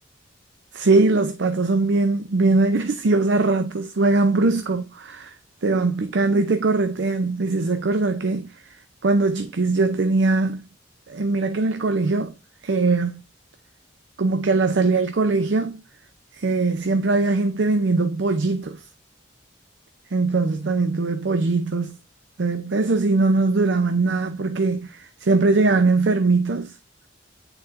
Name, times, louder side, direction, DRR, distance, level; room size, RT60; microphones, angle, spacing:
voice 1, 0.7-5.3 5.6-8.5 9.0-10.7 11.1-12.3 12.6-13.2 14.2-15.8 16.3-18.8 20.1-21.9 22.4-26.7, right 3 dB, 70° right, 0.5 m, -21 dB
8.7 x 4.2 x 2.6 m
head